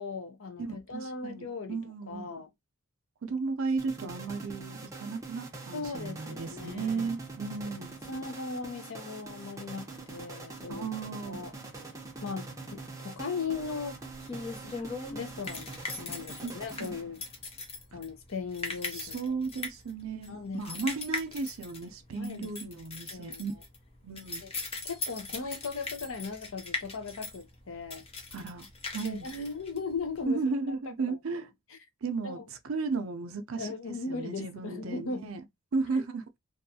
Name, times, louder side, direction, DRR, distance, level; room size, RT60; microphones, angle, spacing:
voice 1, 0.0-2.5 5.7-7.1 8.1-10.9 11.3-11.5 12.2-14.0 14.6-14.7 15.1-17.2 17.9-19.2 20.3-20.9 22.2-22.5 23.1-23.4 24.4-24.5 24.8-28.0 29.0-30.8 31.1-31.4 31.7-31.8 32.2-32.5 33.6-35.3, left 4 dB, 65° left, 0.7 m, -38 dB
voice 2, 0.6-2.4 3.2-8.0 10.7-11.4 16.4-16.5 16.8-17.0 18.9-23.5 24.0-24.4 28.3-28.7 28.9-29.3 30.3-31.5 32.0-33.7 34.1-35.4 35.7-36.2, right 4 dB, 65° right, 0.5 m, -34 dB
sound 1, 3.8-17.4, right 3 dB, 15° right, 0.6 m, -44 dB
sound 2, 13.5-30.2, left 3 dB, 25° left, 0.6 m, -40 dB
2.7 x 2.3 x 2.6 m
head